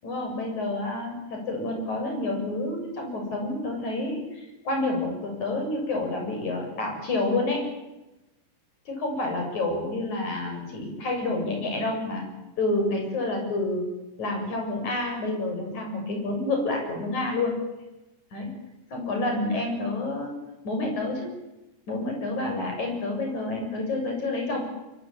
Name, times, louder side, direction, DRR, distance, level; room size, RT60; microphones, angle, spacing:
voice 1, 0.0-7.7 8.9-12.3 12.6-13.9 14.2-17.5 18.3-18.5 18.9-20.3 20.6-21.3 21.9-24.6, left 2 dB, 50° left, 2 dB, 8.8 m, -29 dB
25.5 x 23.5 x 9.1 m, 1.0 s
omnidirectional pair, 4.2 m